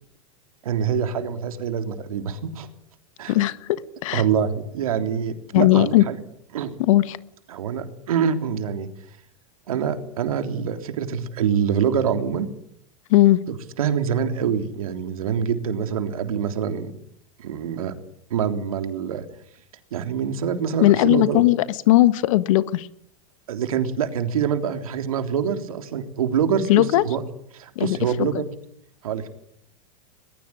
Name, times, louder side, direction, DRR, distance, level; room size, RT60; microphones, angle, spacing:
voice 1, 0.6-2.7 3.2-3.3 4.1-6.2 6.5-6.7 7.5-8.9 9.7-12.5 13.8-16.9 17.4-17.9 18.3-19.2 19.9-21.4 23.5-27.2 27.5-28.5 29.0-29.3, right 7 dB, 80° right, 7 dB, 3.5 m, -25 dB
voice 2, 3.3-4.2 5.5-6.0 6.8-7.2 13.1-13.4 20.8-22.9 26.7-27.0 27.7-28.3, left 16 dB, 65° left, 14 dB, 1.6 m, -18 dB
22.0 x 21.0 x 9.8 m, 0.71 s
hypercardioid pair, 115°, 18 cm